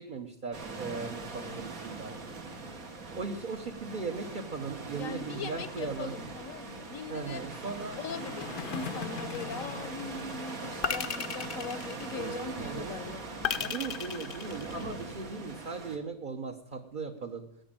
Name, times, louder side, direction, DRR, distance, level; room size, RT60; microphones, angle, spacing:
voice 1, 0.0-2.2 3.1-6.2 7.1-8.0 12.1-13.0 13.6-17.4, right 4 dB, 40° right, 3 dB, 0.9 m, -38 dB
sound 1, 0.5-16.0, right 3 dB, 70° right, 2.0 m, -42 dB
sound 2, 0.9-14.7, left 6 dB, 90° left, 1.5 m, -47 dB
voice 2, 4.9-7.4 8.0-13.7 14.7-15.0, left 5 dB, 70° left, 14 dB, 1.2 m, -41 dB
sound 3, 9.3-9.9 10.8-12.5 13.4-15.2, left 7 dB, 50° left, 0.7 m, -35 dB
10.5 x 9.7 x 8.8 m, 0.83 s
omnidirectional pair, 1.5 m